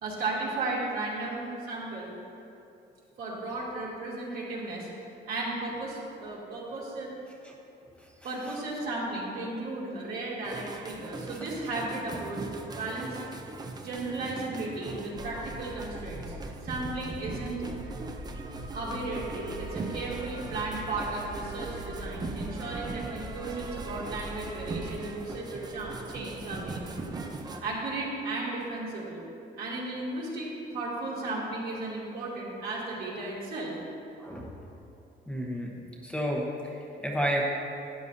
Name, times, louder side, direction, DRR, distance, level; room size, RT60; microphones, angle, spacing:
voice 1, 0.0-2.1 3.2-4.9 5.3-7.1 8.2-12.5 12.8-13.2 13.8-16.3 16.6-17.6 18.7-27.1 27.6-29.2 29.6-33.7, right 2 dB, 60° right, -5 dB, 2.4 m, -35 dB
sound 1, 10.4-27.6, right 3 dB, 25° right, 0.6 m, -40 dB
sound 2, 15.1-24.9, right 1 dB, 85° left, 1.8 m, -43 dB
voice 2, 34.2-34.5 35.3-35.7 36.0-37.4, equal, 5° left, -2 dB, 0.9 m, -31 dB
12.5 x 9.6 x 2.7 m, 2.8 s
cardioid pair, 145°, 18 cm